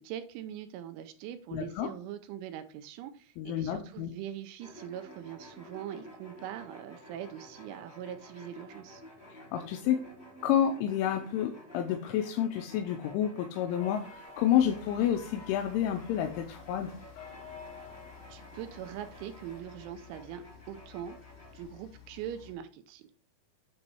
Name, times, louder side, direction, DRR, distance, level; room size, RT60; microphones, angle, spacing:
voice 1, 0.0-9.0 18.3-21.2 21.5-23.0, right 10 dB, 80° right, 9 dB, 3.0 m, -42 dB
voice 2, 1.5-1.9 3.4-4.1 9.3-10.0 10.4-16.9, left 10 dB, 85° left, 5 dB, 3.1 m, -29 dB
sound 1, 4.6-21.6, equal, 20° left, 1.4 m, -52 dB
sound 2, 13.8-19.6, left 4 dB, 45° left, 4.2 m, -51 dB
sound 3, 14.6-22.5, left 9 dB, 60° left, 2.2 m, -54 dB
9.7 x 3.9 x 4.6 m, 0.39 s
omnidirectional pair, 5.7 m